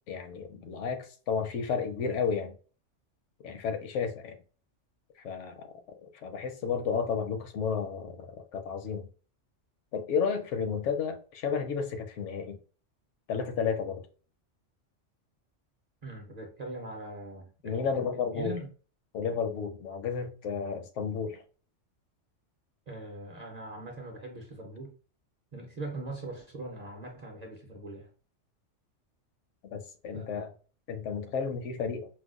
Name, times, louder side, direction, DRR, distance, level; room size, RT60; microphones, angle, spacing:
voice 1, 0.1-2.5 3.4-4.4 5.2-5.7 6.0-8.3 8.5-9.1 9.9-12.6 13.3-14.0 17.6-18.6 19.1-21.4 29.7-30.5 30.9-32.1, left 6 dB, 75° left, 0.9 m, -32 dB
voice 2, 16.0-18.0 18.3-18.7 22.9-24.9 25.5-28.1 30.1-30.5, right 2 dB, 45° right, 0.6 m, -41 dB
4.5 x 2.1 x 2.4 m
omnidirectional pair, 1.3 m